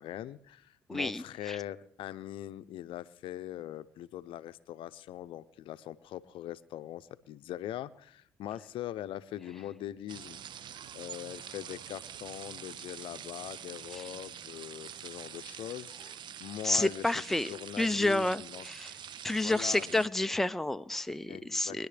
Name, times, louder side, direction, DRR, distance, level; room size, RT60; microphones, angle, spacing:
voice 1, 0.0-18.7 19.0-20.0 21.3-21.9, left 12 dB, 65° left, 13 dB, 0.6 m, -42 dB
voice 2, 0.9-1.6 13.9-14.1 16.6-17.5 17.8-18.9 19.2-21.9, left 2 dB, 5° left, 10 dB, 0.6 m, -30 dB
sound 1, 10.1-20.1, right 9 dB, 55° right, 0.6 m, -46 dB
23.5 x 10.5 x 3.4 m, 0.66 s
hypercardioid pair, 60°, 9 cm